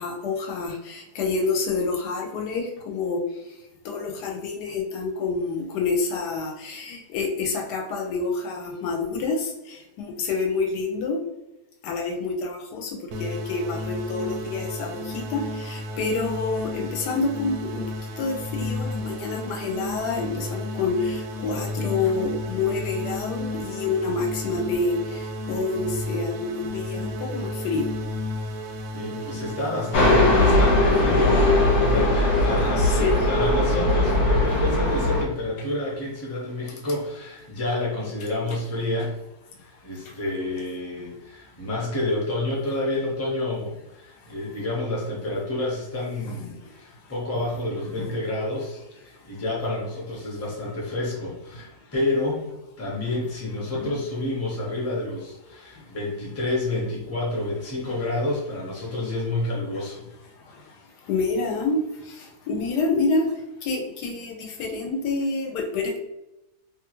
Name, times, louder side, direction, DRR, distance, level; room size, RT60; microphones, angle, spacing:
voice 1, 0.0-3.2 3.8-11.2 11.8-27.9 32.8-33.3 35.2-35.3 38.5-38.6 40.0-40.2 46.2-46.7 47.9-48.2 53.7-54.0 60.4-60.8 61.0-63.3 63.6-66.0, left 3 dB, 90° left, 1 dB, 1.2 m, -28 dB
sound 1, 13.1-30.1, left 1 dB, 70° right, 0.7 m, -33 dB
voice 2, 28.9-39.1 39.6-52.4 52.8-60.0, left 2 dB, 15° left, -4 dB, 0.6 m, -29 dB
sound 2, 29.9-35.2, left 1 dB, 70° left, 1.2 m, -19 dB
2.9 x 2.4 x 2.9 m, 0.94 s
omnidirectional pair, 1.7 m